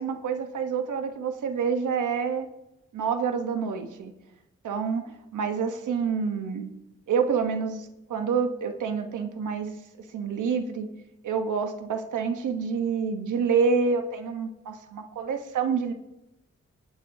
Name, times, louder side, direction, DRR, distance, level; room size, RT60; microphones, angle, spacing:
voice 1, 0.0-2.5 2.9-4.1 4.6-6.7 7.1-9.8 10.1-10.9 11.2-15.9, right 5 dB, 90° right, 7 dB, 1.1 m, -27 dB
24.5 x 9.2 x 2.7 m, 0.92 s
cardioid pair, 50°, 30 cm